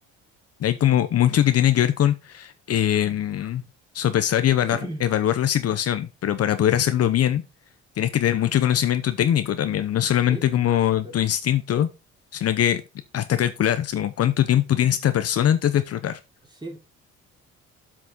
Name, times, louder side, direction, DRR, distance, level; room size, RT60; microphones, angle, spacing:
voice 1, 0.6-3.6 3.9-7.4 8.0-11.9 12.3-12.8 13.1-16.2, left 11 dB, 55° left, 10 dB, 0.9 m, -22 dB
voice 2, 4.7-5.1 10.3-11.1 16.6-16.8, right 2 dB, 15° right, 1 dB, 3.8 m, -37 dB
7.7 x 6.1 x 4.2 m, 0.27 s
cardioid pair, 85°, 29 cm